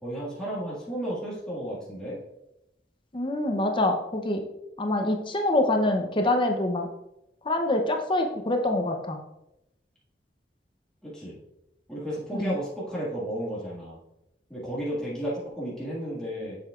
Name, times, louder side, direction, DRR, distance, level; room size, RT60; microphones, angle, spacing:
voice 1, 0.0-2.2 11.0-11.4 11.9-14.0 14.5-16.6, equal, 5° left, -8 dB, 1.8 m, -33 dB
voice 2, 3.1-4.4 4.8-6.9 7.4-9.2 12.3-12.6, left 1 dB, 30° left, 3 dB, 0.7 m, -25 dB
7.5 x 6.8 x 2.4 m, 0.88 s
head